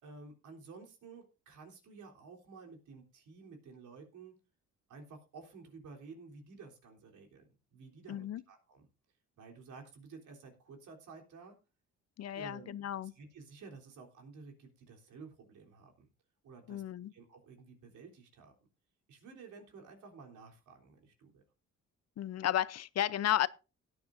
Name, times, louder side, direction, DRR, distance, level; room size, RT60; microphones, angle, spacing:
voice 1, 0.0-4.3 4.9-8.9 9.4-11.6 12.3-12.8 13.0-16.1 16.4-16.8 17.1-18.5 19.1-21.4, right 4 dB, 80° right, 3.6 m, -53 dB
voice 2, 8.1-8.4 12.2-13.1 16.7-17.1 22.2-23.5, left 12 dB, 55° left, 0.6 m, -33 dB
17.5 x 9.7 x 2.6 m
cardioid pair, 90°, 30 cm